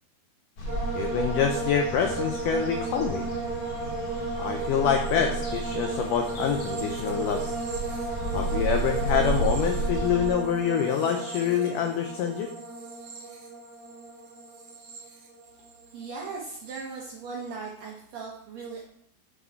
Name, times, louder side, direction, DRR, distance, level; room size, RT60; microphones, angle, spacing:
sound 1, 0.6-10.3, right 3 dB, 55° left, 1.6 m, -33 dB
sound 2, 0.7-15.9 16.2-16.8, right 3 dB, 55° right, 2.6 m, -34 dB
voice 1, 0.9-3.3 4.4-7.5 8.3-12.5, left 7 dB, 80° left, 4 dB, 1.9 m, -26 dB
voice 2, 15.9-18.8, right 4 dB, 70° right, -3 dB, 1.6 m, -38 dB
7.5 x 6.9 x 4.4 m, 0.68 s
omnidirectional pair, 4.5 m